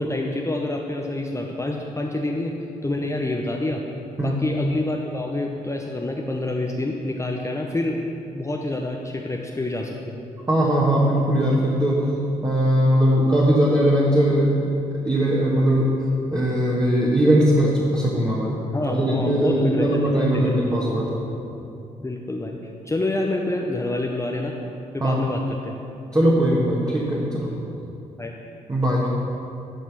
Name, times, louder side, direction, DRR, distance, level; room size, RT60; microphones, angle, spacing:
voice 1, 0.0-2.5 2.8-3.8 4.2-8.0 8.3-10.1 18.7-20.5 22.0-22.6 22.8-24.5 24.9-25.8 28.2-28.3, left 2 dB, 15° left, 0 dB, 0.9 m, -27 dB
voice 2, 10.5-12.1 12.4-14.5 15.0-15.9 16.3-18.6 18.9-21.2 25.0-25.2 26.1-27.5 28.7-29.1, right 1 dB, 20° right, -5 dB, 1.8 m, -20 dB
11.0 x 6.3 x 6.1 m, 2.8 s
figure-of-eight pair, 40°, 19 cm